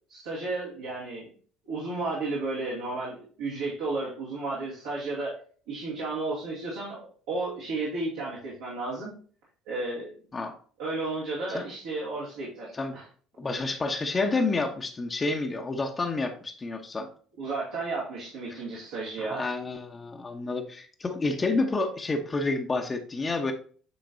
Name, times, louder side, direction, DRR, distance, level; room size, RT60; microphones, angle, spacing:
voice 1, 0.1-1.3 1.7-5.4 5.7-9.1 9.7-10.2 10.8-13.0 17.4-19.4, right 3 dB, 70° right, -7 dB, 2.5 m, -33 dB
voice 2, 13.4-17.1 18.5-18.6 19.2-23.5, left 3 dB, 25° left, 3 dB, 1.0 m, -29 dB
9.5 x 3.8 x 2.7 m, 0.43 s
figure-of-eight pair, 55°, 0 cm